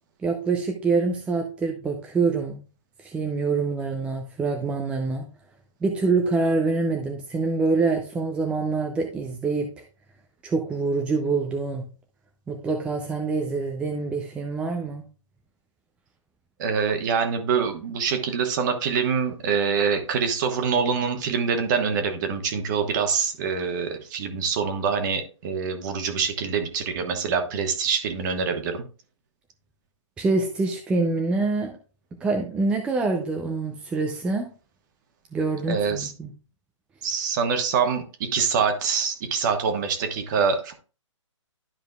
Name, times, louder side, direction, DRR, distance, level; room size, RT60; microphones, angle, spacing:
voice 1, 0.2-2.6 3.0-5.3 5.8-9.8 10.4-11.8 12.5-15.1 30.2-31.7 32.2-34.5 35.3-36.3, right 3 dB, 5° right, 2 dB, 0.5 m, -25 dB
voice 2, 16.6-28.8 35.7-36.1 37.0-40.7, right 6 dB, 35° right, 6 dB, 1.3 m, -25 dB
12.0 x 5.0 x 2.3 m, 0.36 s
hypercardioid pair, 140°, 16 cm